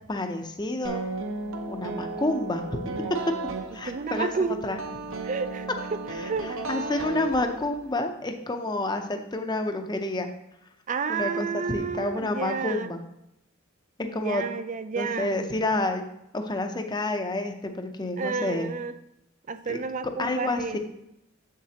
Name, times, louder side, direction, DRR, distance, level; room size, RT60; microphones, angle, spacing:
voice 1, 0.1-1.0 1.7-2.9 3.7-4.3 4.6-4.8 6.4-10.3 11.1-13.0 14.0-14.4 15.0-16.0 16.3-18.7 19.7-19.8 20.2-20.8, left 2 dB, 20° left, 6 dB, 0.6 m, -29 dB
sound 1, 0.8-7.9, right 3 dB, 60° right, 0.8 m, -35 dB
voice 2, 3.8-4.7 5.2-6.5 10.9-12.9 14.1-15.4 18.2-18.9 19.5-20.8, right 5 dB, 35° right, 12 dB, 0.3 m, -31 dB
7.3 x 7.2 x 2.8 m, 0.85 s
head